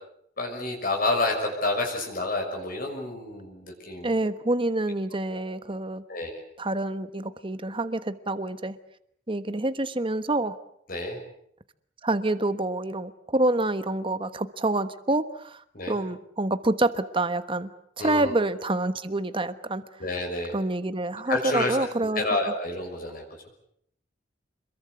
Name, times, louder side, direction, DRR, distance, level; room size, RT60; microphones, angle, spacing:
voice 1, 0.4-4.2 5.3-5.4 6.1-6.4 10.9-11.2 15.7-16.0 18.0-18.4 20.0-20.6 21.3-23.2, left 2 dB, 50° left, 1 dB, 6.1 m, -29 dB
voice 2, 4.0-6.0 6.6-8.8 9.3-10.6 12.0-15.6 15.9-17.7 18.0-19.8 20.5-22.5, right 2 dB, 30° right, 11 dB, 1.2 m, -27 dB
27.0 x 22.0 x 8.2 m, 0.70 s
head